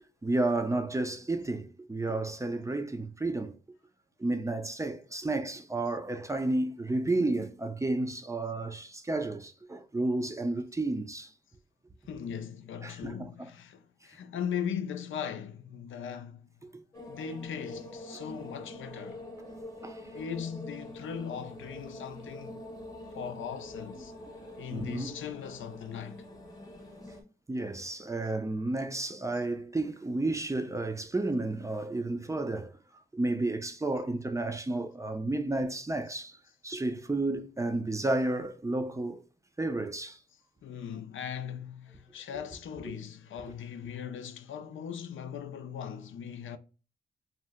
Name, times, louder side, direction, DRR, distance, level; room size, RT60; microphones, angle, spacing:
voice 1, 0.0-3.5 4.2-11.3 12.8-13.5 16.6-16.8 18.1-18.2 19.8-20.0 24.4-25.1 27.5-32.7 33.1-36.4 36.6-39.2 39.6-40.2 42.8-42.9, right 2 dB, 15° right, 0.4 m, -32 dB
voice 2, 12.1-16.5 17.1-19.3 20.1-22.6 23.1-24.1 24.6-26.2 40.6-46.6, left 8 dB, 80° left, 0.4 m, -39 dB
sound 1, 16.9-27.2, left 1 dB, 15° left, 0.8 m, -45 dB
2.7 x 2.1 x 3.4 m
cardioid pair, 75°, 20 cm